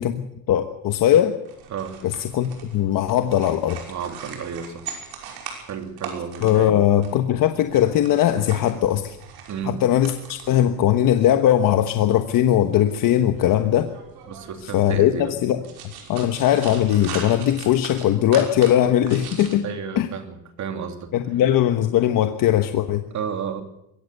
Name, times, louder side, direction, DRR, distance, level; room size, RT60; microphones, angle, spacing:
voice 1, 0.0-1.4 2.0-3.8 6.4-9.2 9.7-13.9 14.7-15.1 15.4-15.6 16.1-19.7 20.0-20.1 21.1-23.0, left 11 dB, 55° left, 7 dB, 1.2 m, -19 dB
sound 1, 1.5-19.5, right 7 dB, 70° right, 5.9 m, -41 dB
voice 2, 3.9-4.9 5.7-6.8 9.5-9.8 14.3-15.3 19.6-21.1 23.1-23.6, right 6 dB, 45° right, 6 dB, 2.9 m, -32 dB
22.5 x 17.0 x 6.8 m, 0.83 s
cardioid pair, 160°, 40 cm